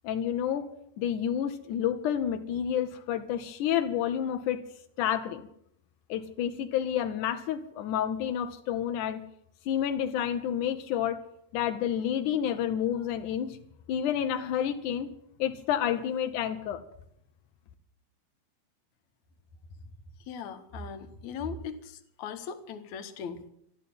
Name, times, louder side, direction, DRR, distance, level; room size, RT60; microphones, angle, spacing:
voice 1, 0.0-4.6 5.0-5.4 6.1-9.2 9.7-11.2 11.5-13.6 13.9-15.1 15.4-16.8, left 9 dB, 85° left, 7 dB, 1.7 m, -29 dB
voice 2, 20.3-23.5, left 5 dB, 65° left, 8 dB, 1.9 m, -39 dB
13.0 x 12.5 x 8.5 m, 0.73 s
omnidirectional pair, 4.8 m